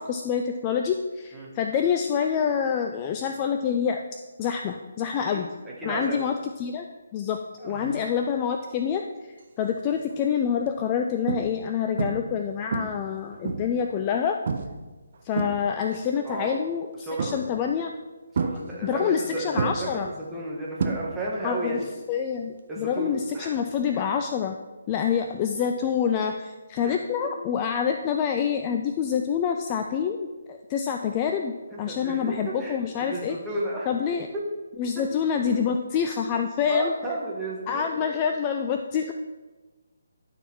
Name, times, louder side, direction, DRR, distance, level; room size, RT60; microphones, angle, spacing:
voice 1, 0.0-5.5 5.8-6.9 7.1-9.0 9.6-14.4 15.2-17.9 18.8-20.1 21.4-21.8 22.1-24.6 24.9-30.2 30.5-33.4 33.9-34.3 34.8-36.9 37.7-39.1, left 7 dB, 25° left, 5 dB, 0.4 m, -27 dB
voice 2, 5.8-6.2 7.6-7.9 16.2-16.6 17.0-17.4 18.3-21.8 22.7-23.6 23.9-24.0 26.8-26.9 31.9-33.9 34.3-34.4 34.9-35.1 36.7-38.1, right 1 dB, 5° right, -5 dB, 1.5 m, -33 dB
sound 1, 9.6-10.0 10.5-10.7 11.3-11.7 12.0-12.4 12.7-13.8 14.5-14.8 15.1-16.0 17.2-17.7 18.3-19.2 19.6-21.5 21.7-22.1 24.2-24.3, right 4 dB, 45° right, 0.7 m, -30 dB
12.0 x 4.2 x 4.4 m, 1.3 s
figure-of-eight pair, 145°, 0 cm